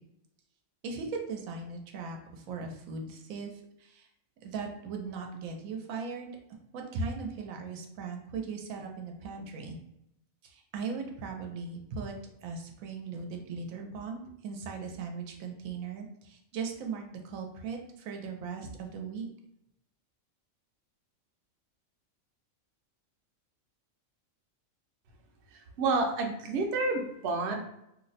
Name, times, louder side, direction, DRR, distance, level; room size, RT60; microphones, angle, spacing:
voice 1, 0.8-4.1 4.4-6.4 6.7-9.8 10.4-12.2 12.4-19.3, right 4 dB, 90° right, 2 dB, 1.0 m, -38 dB
voice 2, 25.5-27.6, right 3 dB, 65° right, 2 dB, 0.8 m, -29 dB
2.6 x 2.0 x 4.0 m, 0.81 s
omnidirectional pair, 1.4 m